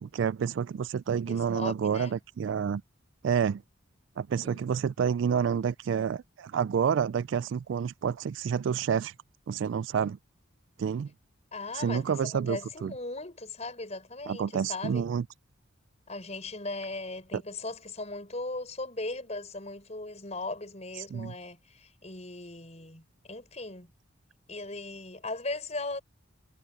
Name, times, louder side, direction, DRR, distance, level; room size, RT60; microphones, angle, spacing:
voice 1, 0.0-2.8 3.2-3.6 4.2-9.1 9.5-10.2 10.8-11.1 11.7-12.9 14.3-15.2 21.1-21.3, right 7 dB, 65° right, 0.3 m, -29 dB
voice 2, 1.2-2.1 4.4-4.9 11.5-15.1 16.1-23.9 24.5-26.0, left 2 dB, 35° left, 6.1 m, -38 dB
head